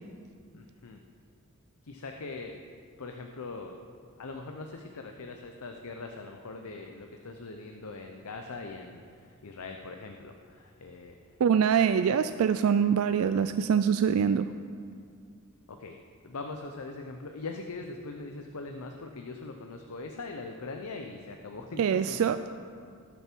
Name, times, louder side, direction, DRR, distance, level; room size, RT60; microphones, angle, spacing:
voice 1, 0.5-1.0 1.8-2.6 3.0-3.8 4.2-11.4 15.7-16.0 16.2-22.2, left 3 dB, 80° left, 4 dB, 0.7 m, -41 dB
voice 2, 11.4-14.5 21.8-22.4, right 7 dB, 70° right, 11 dB, 0.3 m, -24 dB
18.0 x 6.9 x 4.5 m, 2.2 s
head